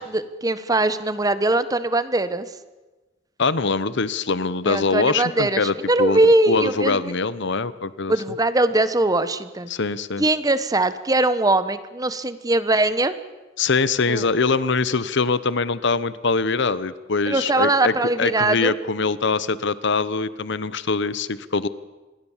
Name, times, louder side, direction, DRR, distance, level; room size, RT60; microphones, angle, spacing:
voice 1, 0.0-2.5 4.7-7.1 8.1-9.7 10.2-13.1 14.1-14.3 17.3-18.7, right 2 dB, 20° right, 13 dB, 1.2 m, -21 dB
voice 2, 3.4-6.2 6.5-8.1 9.7-10.2 13.6-21.7, left 4 dB, 60° left, 16 dB, 0.9 m, -23 dB
27.0 x 21.0 x 7.3 m, 1.2 s
head